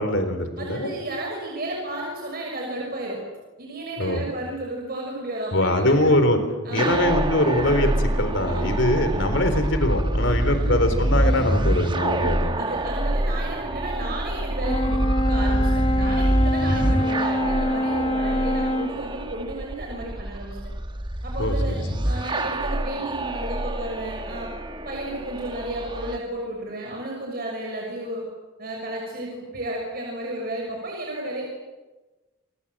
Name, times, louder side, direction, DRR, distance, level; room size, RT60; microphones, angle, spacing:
voice 1, 0.0-0.9 4.0-4.2 5.5-6.4 6.7-12.6 21.4-21.7, left 1 dB, 65° left, 8 dB, 4.1 m, -22 dB
voice 2, 0.6-3.2 3.6-6.1 6.6-7.3 8.5-8.8 10.2-10.9 12.0-20.7 21.2-21.8 22.0-24.5 24.8-28.2 28.6-31.4, right 1 dB, 50° right, -1 dB, 6.4 m, -33 dB
sound 1, 6.8-26.2, right 1 dB, 25° right, 1.3 m, -26 dB
Brass instrument, 14.6-19.0, left 1 dB, 25° left, 0.9 m, -25 dB
28.5 x 24.5 x 7.6 m, 1.2 s
head